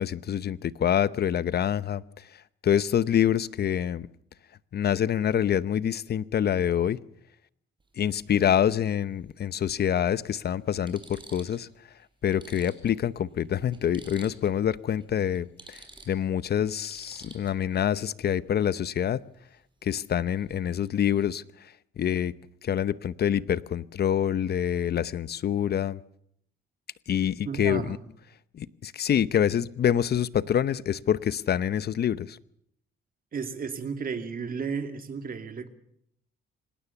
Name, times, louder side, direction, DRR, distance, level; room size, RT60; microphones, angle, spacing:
voice 1, 0.0-4.1 4.7-7.0 8.0-11.7 12.2-19.2 19.8-22.3 22.6-26.0 27.1-28.0 28.5-32.4, left 9 dB, 55° left, 17 dB, 0.8 m, -26 dB
sound 1, 7.8-8.0 9.5-9.6 10.2-10.3 10.7-11.7 12.0-12.1 12.3-14.6 14.9-15.0 15.3-17.8 20.4-20.6 20.9-21.3, right 2 dB, 25° right, 5.9 m, -50 dB
voice 2, 27.4-28.0 33.3-35.7, right 5 dB, 45° right, 8 dB, 2.5 m, -33 dB
26.0 x 17.0 x 7.0 m, 0.70 s
cardioid pair, 90°, 20 cm